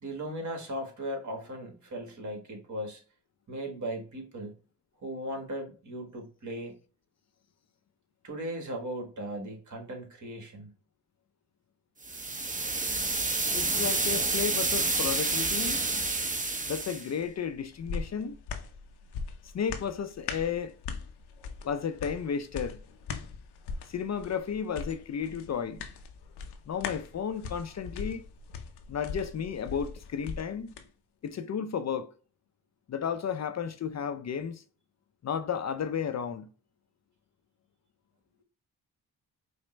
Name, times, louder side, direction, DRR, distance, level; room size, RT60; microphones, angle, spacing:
voice 1, 0.0-3.0 3.5-4.6 5.0-6.8 8.2-10.7, right 1 dB, 50° right, 1.6 m, -37 dB
sound 1, 12.0-17.1, right 3 dB, 20° right, 0.8 m, -29 dB
voice 2, 13.5-15.8 16.7-18.4 19.5-20.8 21.6-22.8 23.9-25.8 26.7-28.2 28.9-30.7 31.2-32.1 32.9-34.6 35.2-36.5, left 7 dB, 45° left, 0.5 m, -33 dB
sound 2, 17.2-30.9 31.3-31.4, left 5 dB, 85° left, 0.7 m, -41 dB
5.0 x 2.1 x 3.1 m
cardioid pair, 60°, 38 cm